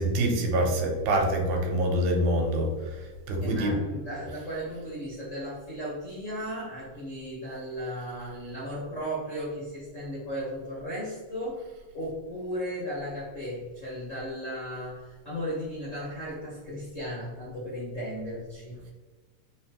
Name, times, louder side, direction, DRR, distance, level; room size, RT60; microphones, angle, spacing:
voice 1, 0.0-3.8, right 1 dB, 85° right, 2 dB, 2.3 m, -26 dB
voice 2, 3.4-11.7 11.9-18.8, equal, 45° left, -8 dB, 1.0 m, -36 dB
4.2 x 4.0 x 2.9 m, 1.3 s
omnidirectional pair, 3.3 m